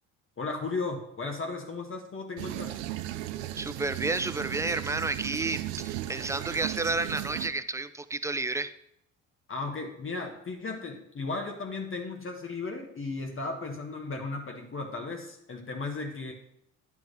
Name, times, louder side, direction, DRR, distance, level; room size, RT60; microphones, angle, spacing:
voice 1, 0.4-2.8 9.5-16.3, left 3 dB, 30° left, 2 dB, 1.3 m, -35 dB
sound 1, 2.4-7.5, right 14 dB, 80° right, 0.6 m, -36 dB
voice 2, 3.6-8.7, right 3 dB, 10° right, 12 dB, 0.4 m, -31 dB
9.4 x 3.5 x 6.5 m, 0.76 s
hypercardioid pair, 65°, 39 cm